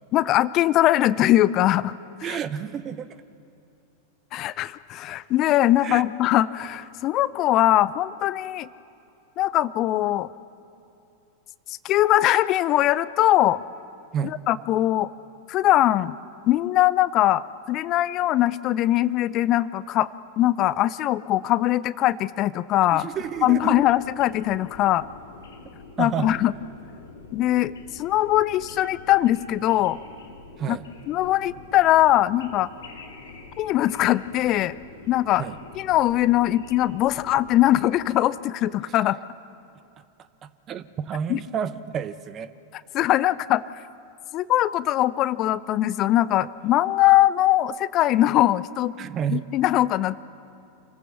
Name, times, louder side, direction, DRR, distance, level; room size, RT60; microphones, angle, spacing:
voice 1, 0.1-1.9 2.3-2.4 4.3-8.7 9.4-10.3 11.7-13.6 14.5-15.1 15.5-16.2 16.5-20.1 20.4-23.1 23.4-25.1 26.0-26.5 27.3-30.0 30.7-30.8 31.1-32.7 33.6-34.8 35.1-35.4 35.8-39.2 41.3-41.4 42.9-43.6 44.3-48.9 49.3-50.2, left 14 dB, 35° left, 18 dB, 0.5 m, -21 dB
voice 2, 2.2-3.2 5.8-6.0 14.1-14.3 22.9-23.8 26.0-26.4 30.6-30.8 35.4-35.6 40.4-42.5 49.0-49.5, right 8 dB, 30° right, 14 dB, 0.7 m, -30 dB
sound 1, 23.1-37.8, left 3 dB, 65° left, 2.8 m, -45 dB
27.0 x 15.5 x 7.1 m, 2.8 s
figure-of-eight pair, 90°, 0 cm